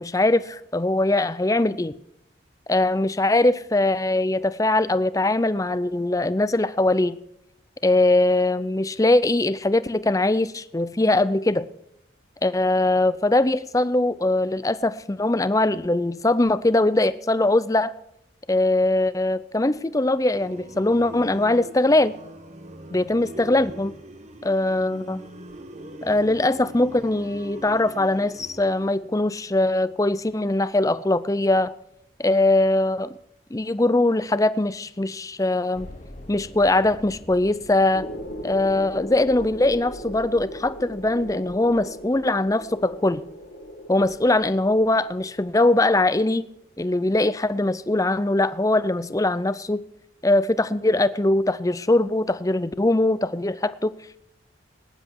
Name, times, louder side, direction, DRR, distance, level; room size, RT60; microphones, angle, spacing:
voice 1, 0.0-1.9 2.7-7.2 7.8-11.7 12.4-17.9 18.5-22.1 22.9-23.9 24.4-25.2 26.0-31.7 32.2-33.2 33.5-35.9 36.3-38.1 38.4-43.2 43.9-46.5 46.8-49.8 50.2-53.9, left 2 dB, 15° left, 15 dB, 0.5 m, -21 dB
sound 1, 20.3-28.9, right 1 dB, 35° right, 1.2 m, -42 dB
sound 2, 35.7-40.0, left 1 dB, 35° left, 1.2 m, -46 dB
sound 3, 37.9-45.7, equal, 55° left, 2.0 m, -38 dB
18.5 x 10.0 x 4.7 m, 0.79 s
head